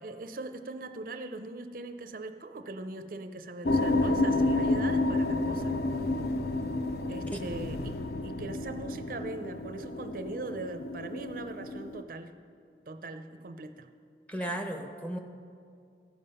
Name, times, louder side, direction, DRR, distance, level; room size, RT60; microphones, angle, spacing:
voice 1, 0.0-5.8 7.1-7.9 8.2-12.3 12.9-13.9, right 2 dB, 50° right, 9 dB, 0.5 m, -40 dB
sound 1, 3.6-12.0, left 2 dB, 60° left, 0.5 m, -30 dB
voice 2, 14.3-15.2, right 1 dB, 10° left, 4 dB, 0.7 m, -34 dB
14.5 x 7.5 x 5.4 m, 2.4 s
head